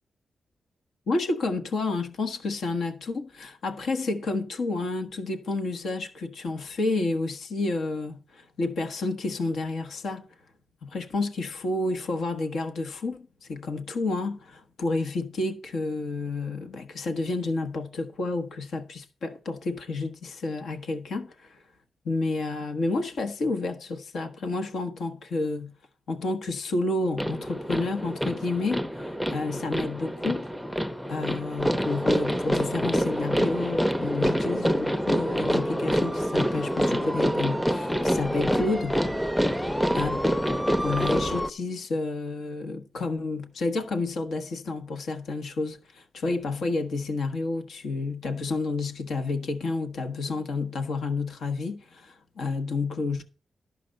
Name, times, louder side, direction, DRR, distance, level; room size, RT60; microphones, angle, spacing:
voice 1, 1.1-10.2 10.8-21.6 22.0-25.7 26.1-30.5 31.1-39.0 39.9-40.2 40.8-53.2, left 3 dB, 80° left, 1.2 m, -30 dB
sound 1, 27.2-41.5, equal, 5° left, 0.5 m, -26 dB
12.5 x 5.1 x 6.5 m
wide cardioid pair, 145°, 0 cm